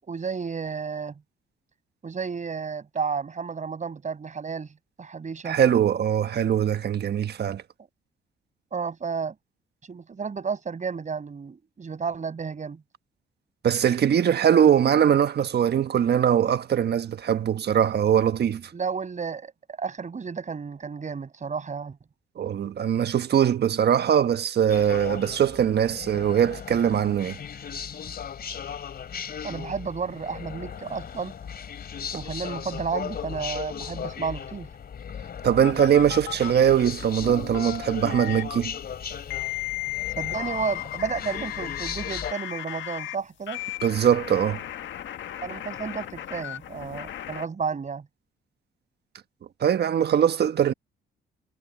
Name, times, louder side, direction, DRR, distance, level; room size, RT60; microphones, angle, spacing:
voice 1, 0.1-1.2 2.0-4.7 5.0-5.6 8.7-9.3 9.9-12.8 18.7-19.5 19.8-22.0 29.4-31.3 32.1-34.7 40.2-43.6 45.4-48.0, right 5 dB, 40° right, 6.5 m, -32 dB
voice 2, 5.4-7.6 13.6-18.7 22.4-27.4 35.4-38.7 43.8-44.6 49.6-50.7, right 9 dB, 55° right, 1.4 m, -22 dB
sound 1, 24.7-42.3, left 7 dB, 50° left, 3.4 m, -37 dB
sound 2, 35.6-36.5 37.2-38.6 39.3-43.2 43.5-47.5, left 14 dB, 70° left, 1.6 m, -35 dB
cardioid pair, 90°, 20 cm